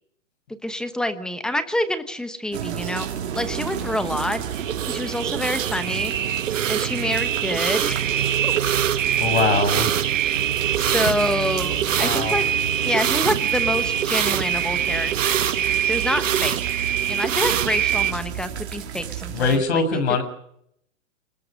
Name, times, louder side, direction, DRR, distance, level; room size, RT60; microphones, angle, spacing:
voice 1, 0.6-3.1 3.3-4.4 4.9-6.1 6.7-8.0 8.4-8.5 10.8-12.4 12.8-15.6 15.9-16.6 17.1-19.8, left 1 dB, ahead, 11 dB, 1.0 m, -27 dB
sound 1, 2.5-19.6, right 9 dB, 60° right, 3.6 m, -31 dB
sound 2, 3.3-18.1, right 9 dB, 80° right, 1.2 m, -24 dB
voice 2, 9.2-9.9 11.9-12.4 19.3-20.2, left 4 dB, 60° left, 6 dB, 7.2 m, -22 dB
26.5 x 19.5 x 6.5 m, 0.71 s
hypercardioid pair, 155°, 38 cm